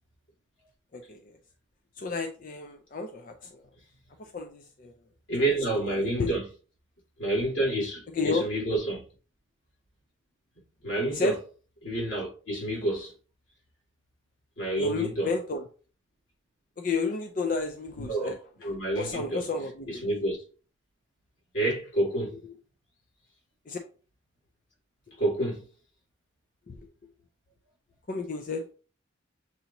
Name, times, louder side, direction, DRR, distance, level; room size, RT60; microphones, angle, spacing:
voice 1, 0.9-1.4 1.9-3.6 4.2-5.0 5.9-6.3 8.1-8.5 11.1-11.4 14.8-15.6 16.8-18.7 18.9-20.0 23.7-23.8 25.1-25.2 26.7-26.9 28.1-28.7, left 3 dB, 45° left, 0.4 m, -32 dB
voice 2, 5.3-6.4 7.2-9.0 10.8-11.3 11.8-13.1 14.6-15.3 18.0-18.4 18.6-19.4 19.9-20.4 21.5-22.4 25.2-25.6, right 1 dB, 85° left, 2.6 m, -28 dB
6.7 x 2.7 x 2.9 m
head